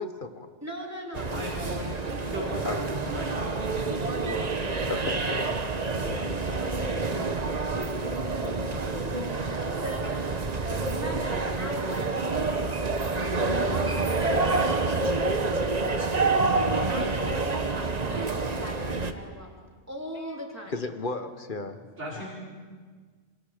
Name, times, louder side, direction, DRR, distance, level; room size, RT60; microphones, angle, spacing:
voice 1, 0.0-0.5 2.6-2.8 4.9-5.5 5.8-6.2 13.6-13.8 20.7-22.3, left 3 dB, 45° left, 8 dB, 1.4 m, -35 dB
voice 2, 0.6-2.7 3.8-4.8 5.6-7.7 8.0-10.1 10.9-13.0 13.5-14.9 15.3-16.2 16.9-19.6 19.9-20.8, equal, 15° right, -1 dB, 3.4 m, -40 dB
sound 1, 1.1-19.1, right 3 dB, 35° right, 1.2 m, -28 dB
voice 3, 1.3-1.9 2.2-3.3 10.0-10.1 10.4-10.7 22.0-22.3, equal, 75° right, -6 dB, 4.6 m, -37 dB
27.0 x 26.5 x 5.1 m, 1.5 s
omnidirectional pair, 1.2 m